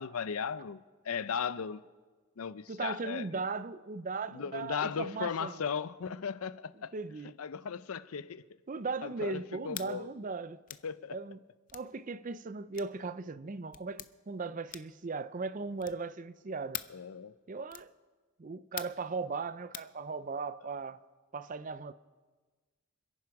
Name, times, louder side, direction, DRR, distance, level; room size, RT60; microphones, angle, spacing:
voice 1, 0.0-1.8 2.4-3.3 4.3-6.9 7.4-8.5 9.0-10.1 10.8-11.2 16.9-17.3, left 6 dB, 85° left, 0.6 m, -37 dB
voice 2, 2.7-5.7 6.9-7.4 8.7-10.6 11.1-11.4 11.7-16.8 17.5-17.9 18.4-21.0 21.3-21.9, right 4 dB, 35° right, 0.5 m, -38 dB
sound 1, 9.7-9.9 10.7-10.9 11.7-11.9 12.7-13.0 13.7-14.1 14.7-15.0 15.8-16.1 16.7-17.0 17.7-17.9 18.8-19.1 19.7-19.9, left 12 dB, 40° left, 0.5 m, -43 dB
27.5 x 10.5 x 4.7 m
head